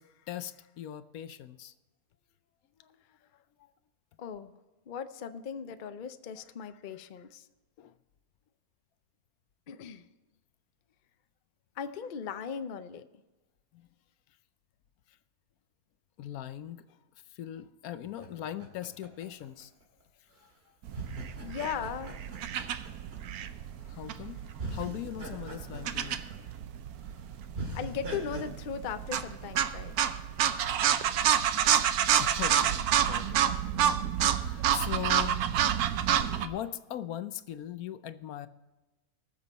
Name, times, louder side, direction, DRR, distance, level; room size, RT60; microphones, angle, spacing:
voice 1, 0.0-1.7 3.3-3.7 6.4-6.5 7.8-7.9 13.7-13.9 15.1-15.2 16.2-17.0 17.3-19.7 20.4-20.5 21.2-21.3 23.8-26.5 31.6-33.5 33.7-35.4 36.4-38.5, left 11 dB, 80° left, 13 dB, 1.1 m, -41 dB
voice 2, 4.2-4.5 4.9-7.5 9.7-10.1 11.8-13.0 21.4-22.2 27.7-29.9, left 7 dB, 55° left, 10 dB, 0.6 m, -38 dB
sound 1, 18.0-20.0 20.9-23.5 24.1-24.2 24.6-26.6 27.0-27.1 27.5-28.4, right 1 dB, 45° right, 2.2 m, -42 dB
sound 2, 20.9-36.5, right 9 dB, 80° right, 1.2 m, -29 dB
20.0 x 6.8 x 4.1 m, 1.1 s
omnidirectional pair, 1.6 m